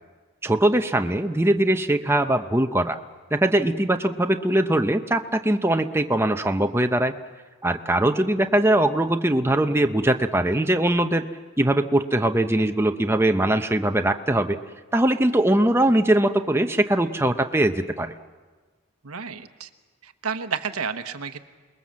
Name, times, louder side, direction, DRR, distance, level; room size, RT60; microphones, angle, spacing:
voice 1, 0.4-3.0 3.3-7.1 7.6-11.3 11.6-14.6 14.9-18.1, right 1 dB, 10° right, 7 dB, 0.7 m, -21 dB
voice 2, 19.0-19.7 20.0-21.4, right 6 dB, 90° right, 9 dB, 1.2 m, -31 dB
28.0 x 21.0 x 7.5 m, 1.4 s
head